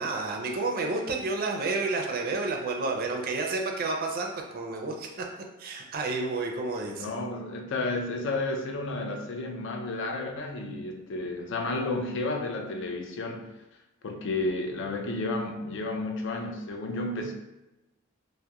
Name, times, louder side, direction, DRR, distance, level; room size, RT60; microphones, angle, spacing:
voice 1, 0.0-5.2 5.6-7.1, right 3 dB, 45° right, 1 dB, 0.4 m, -30 dB
voice 2, 7.0-13.5 14.0-17.3, left 2 dB, 65° left, 3 dB, 0.4 m, -32 dB
2.8 x 2.0 x 2.2 m, 0.96 s
head